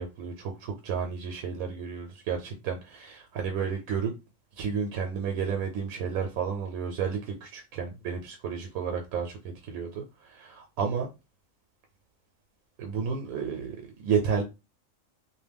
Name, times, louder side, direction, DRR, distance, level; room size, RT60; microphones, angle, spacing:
voice 1, 0.0-4.1 4.6-9.4 9.6-11.1 12.8-14.4, right 6 dB, 85° right, 1.0 m, -31 dB
2.5 x 2.1 x 3.3 m
omnidirectional pair, 1.4 m